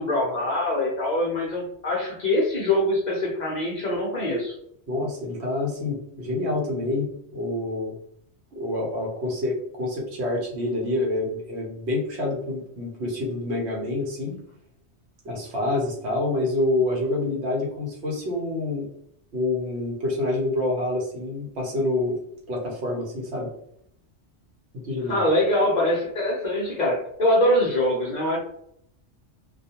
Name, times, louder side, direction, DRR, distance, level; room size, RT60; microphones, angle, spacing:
voice 1, 0.0-4.6 25.1-28.4, left 1 dB, 50° left, -2 dB, 0.6 m, -23 dB
voice 2, 4.9-7.1 7.3-7.9 8.5-14.4 15.2-18.9 19.3-22.2 22.5-23.5 24.8-25.3, left 2 dB, 70° right, -1 dB, 1.1 m, -27 dB
2.4 x 2.2 x 2.8 m, 0.73 s
omnidirectional pair, 1.2 m